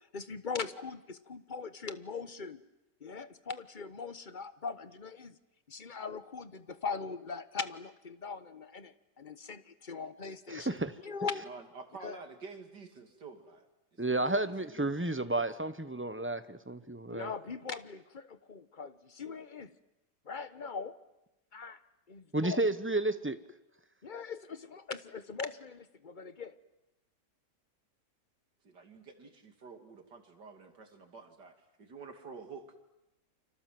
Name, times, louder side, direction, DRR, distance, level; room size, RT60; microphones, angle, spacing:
voice 1, 0.1-2.6 3.0-5.4 5.7-11.5 12.0-12.2 17.1-19.7 20.2-21.0 21.5-21.8 22.1-22.6 24.0-26.6, left 5 dB, 35° left, 13 dB, 1.1 m, -41 dB
voice 2, 10.5-10.9 14.0-17.3 22.3-23.4, right 2 dB, 10° right, 12 dB, 0.6 m, -32 dB
voice 3, 11.4-15.0 28.6-32.8, right 4 dB, 90° right, 6 dB, 3.3 m, -50 dB
29.5 x 26.0 x 7.7 m, 0.90 s
omnidirectional pair, 1.8 m